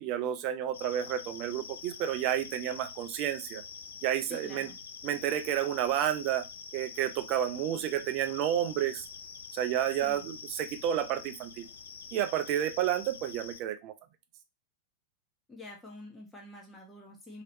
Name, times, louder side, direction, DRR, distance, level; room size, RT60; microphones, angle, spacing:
voice 1, 0.0-3.6 4.0-4.7 5.0-6.4 6.7-9.1 9.5-11.7 12.1-13.9, right 11 dB, 40° right, 9 dB, 0.5 m, -30 dB
sound 1, 0.7-13.6, left 6 dB, 65° left, 0.4 m, -46 dB
voice 2, 4.3-4.8 10.0-10.3 15.5-17.4, left 2 dB, 10° left, -1 dB, 1.0 m, -47 dB
3.0 x 2.9 x 2.9 m, 0.24 s
figure-of-eight pair, 90°, 0 cm